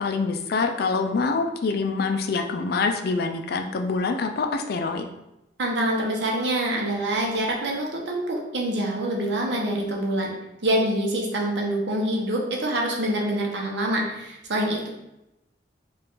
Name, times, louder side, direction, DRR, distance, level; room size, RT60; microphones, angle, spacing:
voice 1, 0.0-5.0, left 4 dB, 60° left, 5 dB, 0.4 m, -25 dB
voice 2, 5.6-10.3 10.6-14.9, right 1 dB, 75° right, -1 dB, 0.9 m, -25 dB
4.5 x 2.4 x 3.8 m, 0.91 s
head